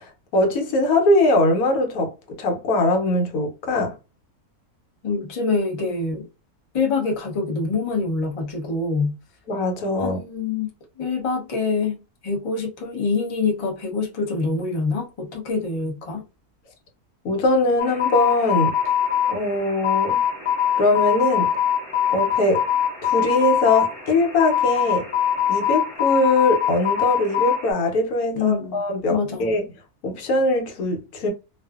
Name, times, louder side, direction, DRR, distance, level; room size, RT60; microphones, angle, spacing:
voice 1, 0.0-2.1 2.4-4.0 9.5-10.2 17.2-18.7 19.3-20.2 20.8-21.5 22.1-22.6 23.0-25.1 25.5-29.6 30.0-31.3, left 2 dB, 75° left, 1.2 m, -21 dB
voice 2, 5.0-6.3 6.7-9.2 10.0-10.7 11.0-16.2 28.3-29.5, left 4 dB, 50° left, 0.4 m, -25 dB
sound 1, 17.8-27.7, left 9 dB, 25° left, 0.9 m, -23 dB
2.5 x 2.4 x 2.3 m
omnidirectional pair, 1.6 m